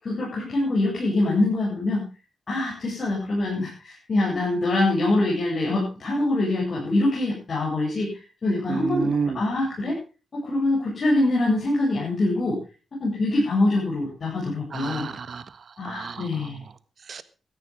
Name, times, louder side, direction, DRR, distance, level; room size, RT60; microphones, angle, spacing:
voice 1, 0.0-2.0 2.5-8.1 8.4-9.1 9.3-10.0 10.3-12.6 13.0-15.1 15.8-16.6, left 2 dB, 45° left, -5 dB, 7.9 m, -24 dB
voice 2, 8.7-9.4 14.7-16.5 17.1-17.2, right 5 dB, 55° right, 14 dB, 1.5 m, -30 dB
17.0 x 13.5 x 3.7 m, 0.33 s
wide cardioid pair, 115°, 0 cm